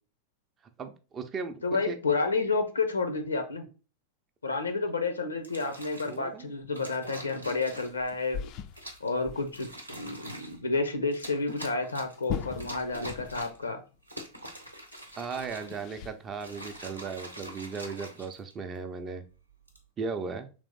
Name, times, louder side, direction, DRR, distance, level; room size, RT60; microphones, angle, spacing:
voice 1, 0.8-2.0 6.1-6.5 15.2-19.2 20.0-20.5, right 5 dB, 25° right, 7 dB, 0.5 m, -37 dB
voice 2, 1.6-3.6 4.4-8.5 9.0-13.8, left 3 dB, 75° left, 7 dB, 0.6 m, -30 dB
sound 1, 5.4-6.2 6.7-8.1 8.7-9.1 9.5-10.6 11.1-12.2 12.6-13.7 14.0-15.9 16.3-18.8 19.5-19.8, equal, 90° right, 0.7 m, -44 dB
sound 2, 7.7-9.7 10.0-10.1 10.5-10.6 12.0-13.7 13.9-14.0 14.9-16.9, left 8 dB, 40° left, 0.4 m, -41 dB
3.4 x 3.1 x 3.8 m, 0.34 s
figure-of-eight pair, 90°, 0 cm